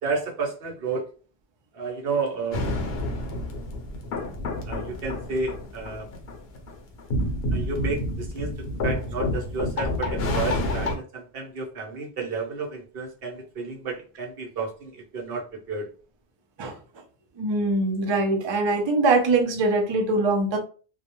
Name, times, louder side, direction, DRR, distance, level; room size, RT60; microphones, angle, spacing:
voice 1, 0.0-1.1 1.7-2.6 4.6-6.1 7.5-15.9, right 4 dB, 70° right, 0 dB, 0.9 m, -31 dB
sound 1, 2.5-11.0, left 1 dB, 75° left, 0.9 m, -29 dB
voice 2, 17.4-20.6, right 3 dB, 45° right, 3 dB, 0.3 m, -22 dB
2.3 x 2.1 x 2.9 m, 0.39 s
omnidirectional pair, 1.0 m